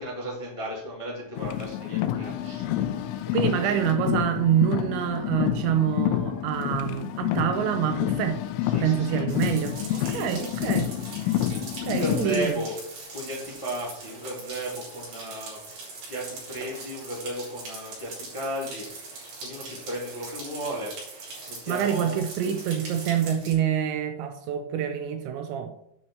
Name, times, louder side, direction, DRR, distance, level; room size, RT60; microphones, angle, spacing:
voice 1, 0.0-3.7 8.6-10.7 11.8-12.7 13.1-15.6 16.1-19.1 19.4-20.9 21.4-22.2, equal, 10° left, -4 dB, 1.5 m, -35 dB
Car, 1.4-12.5, left 12 dB, 85° left, 3.1 m, -28 dB
voice 2, 3.3-8.4 8.8-10.9 11.9-12.5 21.7-25.9, right 9 dB, 80° right, 6 dB, 2.8 m, -26 dB
sound 1, 9.3-23.5, right 3 dB, 50° right, 5.6 m, -41 dB
9.8 x 5.9 x 5.7 m, 0.78 s
omnidirectional pair, 5.5 m